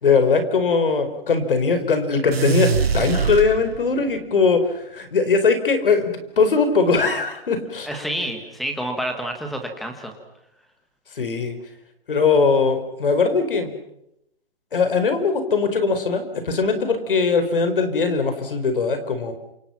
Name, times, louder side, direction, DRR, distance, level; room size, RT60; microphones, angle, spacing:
voice 1, 0.0-6.1 6.4-8.0 11.1-11.6 12.1-13.7 14.7-19.3, left 4 dB, 60° left, 9 dB, 4.9 m, -20 dB
sound 1, 2.3-4.1, right 5 dB, 80° right, 5.4 m, -23 dB
voice 2, 7.9-10.1, right 1 dB, ahead, 5 dB, 1.3 m, -28 dB
28.0 x 27.0 x 5.9 m, 0.81 s
hypercardioid pair, 175°, 30 cm